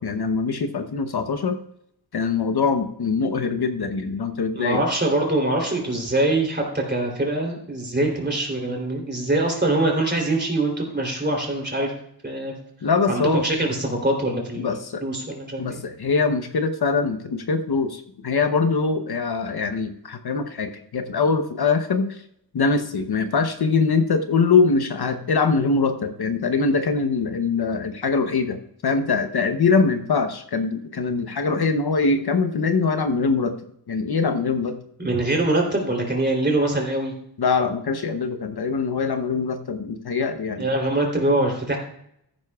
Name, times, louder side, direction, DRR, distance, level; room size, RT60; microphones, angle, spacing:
voice 1, 0.0-1.6 2.1-4.8 8.0-8.1 12.8-13.5 14.6-15.0 15.6-22.2 22.5-28.6 28.8-33.5 33.9-34.8 37.4-40.7, left 4 dB, 60° left, 7 dB, 0.9 m, -23 dB
voice 2, 4.5-11.9 12.2-12.5 13.1-15.8 35.0-37.1 40.6-41.8, right 2 dB, 25° right, 0 dB, 3.2 m, -23 dB
14.5 x 10.5 x 2.4 m, 0.73 s
wide cardioid pair, 115°, 44 cm